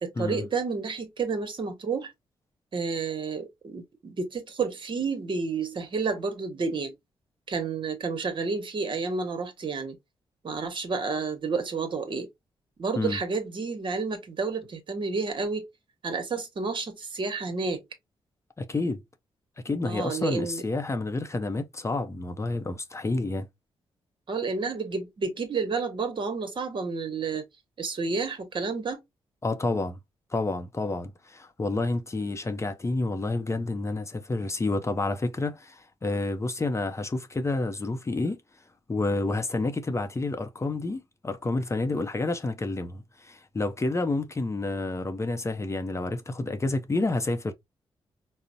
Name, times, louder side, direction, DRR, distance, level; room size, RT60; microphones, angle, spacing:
voice 1, 0.0-2.1 2.7-6.9 7.5-10.0 10.4-12.3 12.8-15.7 16.0-17.8 19.8-20.6 24.3-27.5 27.8-29.0, right 4 dB, 55° right, 1.0 m, -30 dB
voice 2, 18.6-19.0 19.6-23.5 29.4-30.0 30.3-38.4 38.9-47.5, left 2 dB, 30° left, 0.6 m, -29 dB
3.8 x 2.1 x 2.6 m
cardioid pair, 60°, 10 cm